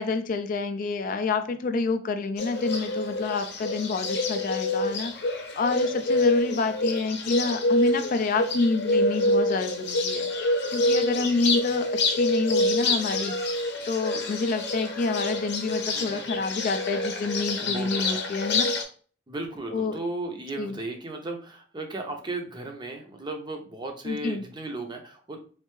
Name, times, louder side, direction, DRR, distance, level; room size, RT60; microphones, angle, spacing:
voice 1, 0.0-5.1 5.6-10.3 10.7-13.3 13.9-18.7 19.7-20.0 20.6-20.8 24.1-24.4, left 3 dB, 50° left, 8 dB, 0.3 m, -28 dB
Bird, 2.4-18.8, left 2 dB, 65° left, 0.7 m, -27 dB
voice 2, 15.9-16.5 17.6-18.2 19.3-25.4, right 2 dB, 25° right, 3 dB, 0.6 m, -35 dB
3.2 x 2.7 x 3.0 m, 0.42 s
head